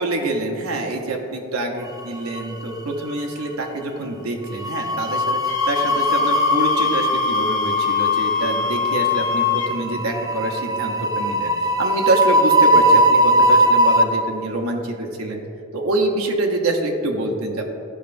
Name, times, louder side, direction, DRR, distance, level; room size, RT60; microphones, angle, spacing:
voice 1, 0.0-5.4 5.7-15.4 15.7-17.8, right 2 dB, 80° right, 2 dB, 0.8 m, -25 dB
sound 1, 2.0-2.8 3.0-3.3 4.5-14.0, right 1 dB, 15° right, 0.4 m, -20 dB
Wind instrument woodwind instrument, 5.5-9.8, left 7 dB, 35° left, 1.3 m, -23 dB
12.5 x 5.7 x 2.5 m, 2.5 s
head